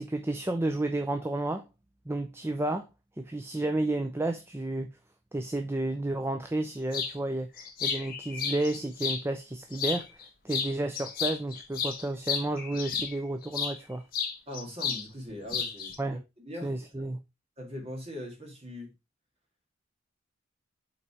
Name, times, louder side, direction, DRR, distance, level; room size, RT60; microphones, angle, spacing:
voice 1, 0.0-1.7 2.1-2.8 3.2-4.9 5.3-7.5 7.8-10.1 10.4-14.0 16.0-16.2 16.6-17.2, right 2 dB, 10° right, 0.4 m, -31 dB
sound 1, 6.9-7.1 7.6-9.2 9.7-10.2 10.5-13.8 14.1-15.0 15.3-16.0, left 6 dB, 40° left, 1.2 m, -32 dB
voice 2, 14.5-16.9 17.6-18.9, equal, 30° right, 2.1 m, -41 dB
5.6 x 4.1 x 4.7 m
head